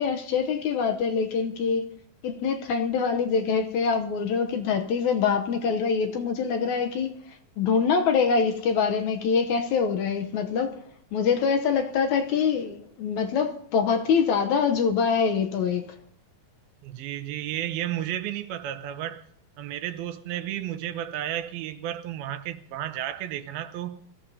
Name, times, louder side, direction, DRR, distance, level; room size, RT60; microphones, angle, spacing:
voice 1, 0.0-1.9 2.2-7.1 7.6-10.8 11.1-15.9, left 6 dB, 70° left, 1.9 m, -24 dB
voice 2, 16.8-19.2 19.6-24.0, right 12 dB, 85° right, 2.7 m, -32 dB
24.0 x 15.0 x 2.8 m
omnidirectional pair, 4.2 m